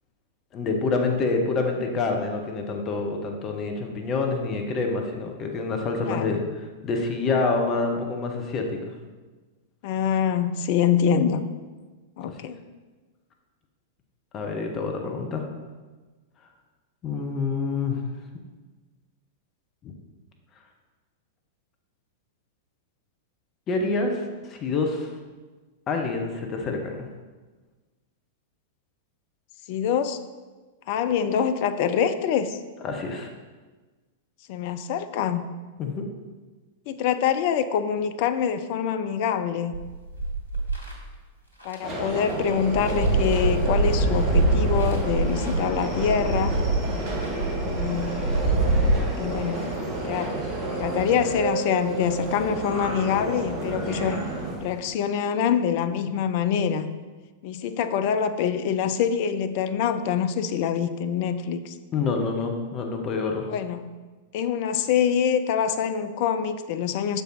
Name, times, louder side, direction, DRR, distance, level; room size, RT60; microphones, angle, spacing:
voice 1, 0.5-6.4 6.8-8.9 12.2-12.3 14.3-15.4 17.0-18.0 19.8-19.9 23.7-25.1 25.9-26.9 32.8-33.3 35.8-36.1 61.9-63.5, left 3 dB, 30° left, 3 dB, 0.8 m, -27 dB
voice 2, 6.1-6.4 9.8-11.4 12.2-12.6 29.7-30.2 30.9-32.6 34.5-35.4 36.9-39.8 41.6-46.6 47.6-48.3 49.1-49.6 50.0-50.3 50.8-54.3 54.6-56.9 57.4-61.7 63.4-63.9 64.3-67.2, left 8 dB, 45° left, 10 dB, 0.4 m, -25 dB
sound 1, 39.7-40.9 41.6-41.7 42.1-48.9, right 2 dB, 80° left, 1.4 m, -24 dB
Subway metro underground, 41.8-54.6, right 2 dB, 25° right, 1.2 m, -31 dB
sound 2, 43.6-54.8, equal, 5° right, 1.1 m, -41 dB
6.6 x 4.6 x 4.0 m, 1.3 s
figure-of-eight pair, 95°, 0 cm